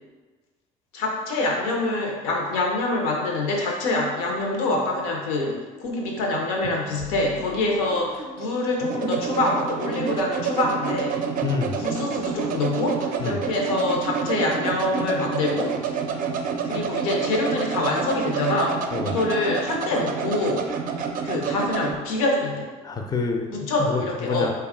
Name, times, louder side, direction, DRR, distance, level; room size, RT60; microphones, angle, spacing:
voice 1, 0.9-11.2 11.8-16.0 16.6-20.7 21.2-22.7 23.5-24.5, left 2 dB, 90° left, 0 dB, 0.7 m, -25 dB
sound 1, 6.6-22.0, right 6 dB, 50° right, 0.4 m, -29 dB
voice 2, 11.4-11.8 13.2-13.4 18.9-19.2 22.8-24.5, left 4 dB, 20° left, 3 dB, 0.4 m, -27 dB
3.4 x 2.3 x 3.5 m, 1.3 s
supercardioid pair, 80°, 18 cm